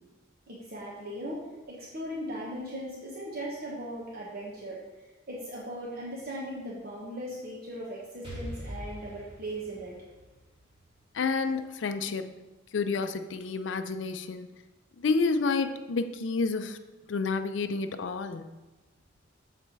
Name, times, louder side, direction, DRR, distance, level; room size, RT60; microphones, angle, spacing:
voice 1, 0.5-1.4 1.7-4.8 5.3-10.0, equal, 55° right, -4 dB, 1.1 m, -38 dB
Explosion, 8.2-12.0, equal, 30° right, 1.8 m, -43 dB
voice 2, 11.1-12.3 12.7-14.5 15.0-16.8 17.1-18.5, left 4 dB, 75° left, 9 dB, 0.5 m, -29 dB
6.8 x 4.1 x 4.6 m, 1.1 s
head